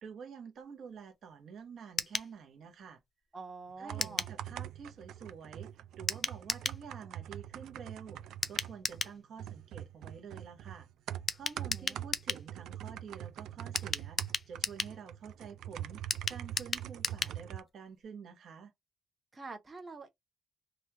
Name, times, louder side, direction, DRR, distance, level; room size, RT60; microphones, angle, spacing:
voice 1, 0.0-3.0 3.8-10.9 11.3-14.2 14.5-18.7, right 6 dB, 65° right, 0.9 m, -49 dB
sound 1, 2.0-2.3 4.0-4.4 6.1-6.8 8.4-9.2 11.3-12.5 13.8-15.0 16.1-17.4 17.7-17.8 18.0-18.1, left 5 dB, 40° left, 0.4 m, -35 dB
voice 2, 3.3-4.3 11.6-12.0 19.3-20.1, right 4 dB, 30° right, 0.9 m, -46 dB
sound 2, 3.7-17.6, right 11 dB, 80° right, 0.3 m, -44 dB
3.1 x 2.3 x 2.9 m
cardioid pair, 90°, 0 cm